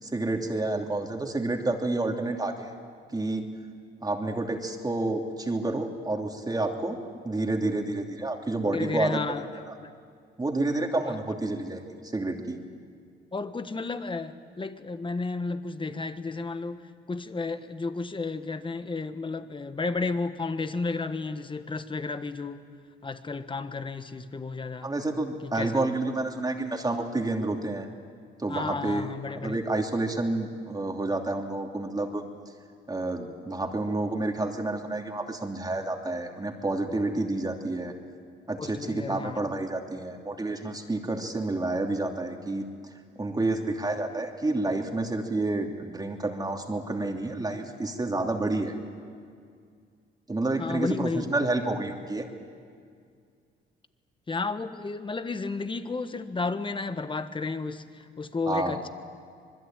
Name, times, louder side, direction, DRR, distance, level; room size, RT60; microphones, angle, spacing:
voice 1, 0.0-2.7 3.1-3.4 4.0-7.0 7.2-9.2 9.6-9.7 10.4-11.8 12.1-12.6 24.8-27.9 28.4-29.1 29.4-32.2 32.9-37.9 38.5-42.6 43.2-48.7 50.3-52.3 58.5-58.8, right 2 dB, 20° right, 3 dB, 2.9 m, -29 dB
voice 2, 8.7-9.5 9.8-9.9 11.0-11.2 13.3-22.6 23.0-24.9 25.4-25.7 28.5-29.6 38.6-39.5 50.6-51.3 54.3-58.9, left 3 dB, 25° left, 10 dB, 1.4 m, -32 dB
26.0 x 21.5 x 9.0 m, 2.2 s
cardioid pair, 90°, 20 cm